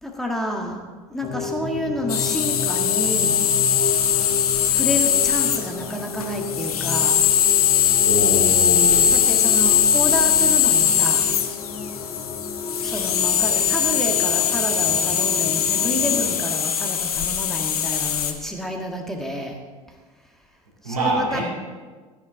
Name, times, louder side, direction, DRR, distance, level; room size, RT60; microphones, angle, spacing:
voice 1, 0.0-3.4 4.6-7.2 9.1-11.3 12.8-19.6 19.9-20.0 20.8-21.4, equal, ahead, 0 dB, 1.7 m, -29 dB
sound 1, 1.2-16.4, left 4 dB, 40° left, 2.1 m, -32 dB
sound 2, 2.1-18.3, left 8 dB, 75° left, 0.9 m, -20 dB
voice 2, 8.0-9.1 20.8-21.4, right 1 dB, 85° right, -5 dB, 4.0 m, -24 dB
14.0 x 9.9 x 3.7 m, 1.4 s
figure-of-eight pair, 70°, 19 cm